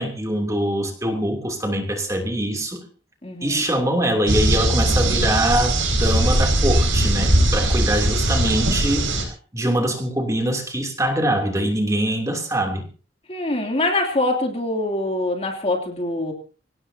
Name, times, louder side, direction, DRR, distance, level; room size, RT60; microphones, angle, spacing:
voice 1, 0.0-2.8 3.4-12.9, right 1 dB, 15° right, 2 dB, 2.9 m, -23 dB
voice 2, 3.2-3.6 13.3-16.3, left 2 dB, 30° left, 3 dB, 2.9 m, -24 dB
sound 1, 4.3-9.2, right 1 dB, 85° right, 5.3 m, -19 dB
25.5 x 17.5 x 2.8 m, 0.37 s
head